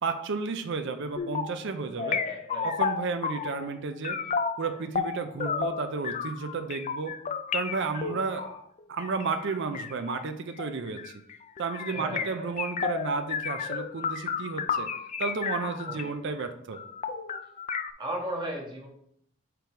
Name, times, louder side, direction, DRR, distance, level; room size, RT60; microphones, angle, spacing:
voice 1, 0.0-2.2 2.6-4.2 4.6-7.2 7.5-8.5 8.9-11.1 11.6-14.9 15.2-16.8, right 4 dB, 60° right, 7 dB, 0.5 m, -32 dB
sound 1, 1.1-1.6 2.0-3.7 4.0-16.1 16.4-16.5 16.7-17.9, left 6 dB, 35° left, 0.3 m, -32 dB
voice 2, 2.0-2.7 8.0-8.6 11.9-12.5 15.8-16.3 18.0-18.9, right 1 dB, 20° right, -1 dB, 1.4 m, -37 dB
5.2 x 4.7 x 4.6 m, 0.70 s
head